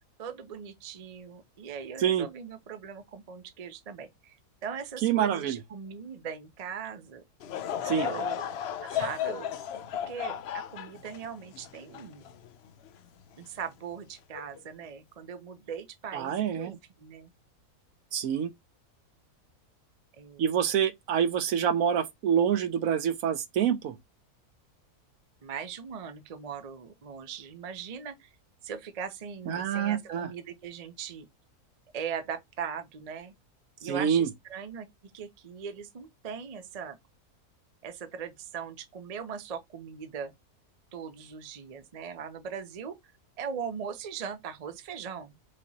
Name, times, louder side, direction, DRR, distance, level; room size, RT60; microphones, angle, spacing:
voice 1, 0.2-4.4 4.6-7.2 8.0-8.5 8.8-9.5 9.9-12.2 13.4-17.3 20.2-20.5 25.4-28.3 28.6-31.3 31.9-33.3 33.8-34.9 35.1-37.0 37.8-40.3 40.9-43.0 43.4-45.4, right 7 dB, 45° right, 0.4 m, -39 dB
voice 2, 5.0-5.6 7.8-8.1 16.1-16.8 18.1-18.5 20.4-23.9 29.5-30.3 33.8-34.3, right 8 dB, 70° right, 0.9 m, -26 dB
Laughter / Crowd, 7.4-12.9 13.4-13.5 14.3-14.6, left 10 dB, 80° left, 0.5 m, -34 dB
4.9 x 2.9 x 2.8 m
omnidirectional pair, 1.6 m